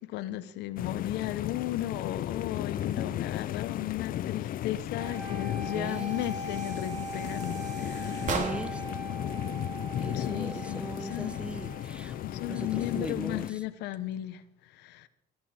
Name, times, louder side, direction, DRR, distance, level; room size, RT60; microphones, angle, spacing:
voice 1, 0.1-8.4 10.1-11.3 12.2-15.1, left 14 dB, 85° left, 0.9 m, -35 dB
sound 1, 0.8-13.5, left 12 dB, 55° left, 0.5 m, -35 dB
voice 2, 2.7-3.2 5.6-6.2 8.2-8.8 10.0-12.2 12.5-13.6, right 1 dB, 5° right, 1.0 m, -39 dB
sound 2, 5.0-13.1, right 2 dB, 60° right, 2.7 m, -41 dB
sound 3, 5.8-8.9, right 4 dB, 45° right, 2.6 m, -38 dB
18.0 x 11.5 x 4.3 m
cardioid pair, 110°, 17 cm